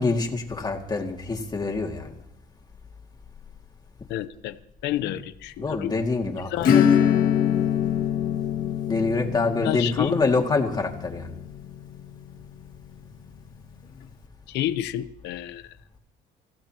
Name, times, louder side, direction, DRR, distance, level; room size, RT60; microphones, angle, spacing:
voice 1, 0.0-2.2 5.0-5.1 5.6-6.9 8.9-11.3, left 3 dB, 25° left, 2.3 m, -26 dB
voice 2, 4.1-4.6 4.8-5.9 6.5-6.8 9.6-10.5 14.5-15.7, left 13 dB, 85° left, 0.8 m, -30 dB
Acoustic guitar / Strum, 6.6-12.9, left 9 dB, 55° left, 1.9 m, -24 dB
25.5 x 15.5 x 3.0 m
cardioid pair, 110°, 17 cm